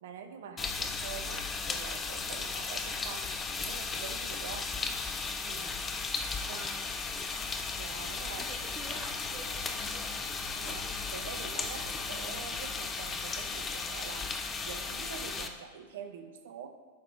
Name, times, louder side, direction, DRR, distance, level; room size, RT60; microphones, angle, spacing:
voice 1, 0.0-3.3 3.6-4.7 5.4-5.8 6.5-6.7 7.8-8.5 10.6-14.3 14.6-16.7, right 7 dB, 60° right, 7 dB, 0.6 m, -45 dB
sound 1, 0.6-15.5, left 4 dB, 20° left, 0.5 m, -36 dB
voice 2, 4.7-5.0 6.4-6.8 7.1-7.5 8.3-10.2, right 4 dB, 30° right, 3 dB, 0.9 m, -49 dB
sound 2, 8.8-14.2, equal, 35° left, 1.8 m, -51 dB
8.4 x 6.0 x 2.2 m, 1.5 s
figure-of-eight pair, 90°, 0 cm